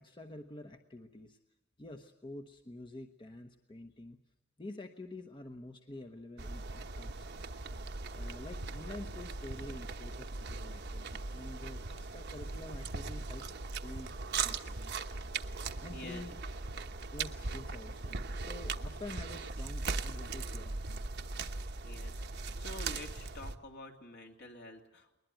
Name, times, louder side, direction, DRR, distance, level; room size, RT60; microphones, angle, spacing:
voice 1, 0.0-1.4 1.8-4.2 4.6-7.6 8.1-15.0 15.8-16.4 17.1-21.0, left 2 dB, 25° left, 6 dB, 1.0 m, -48 dB
sound 1, 6.4-23.5, right 3 dB, 55° right, 1.0 m, -39 dB
voice 2, 15.6-16.2 21.8-25.2, left 1 dB, 60° left, 3 dB, 2.7 m, -49 dB
21.0 x 20.5 x 9.2 m, 0.93 s
head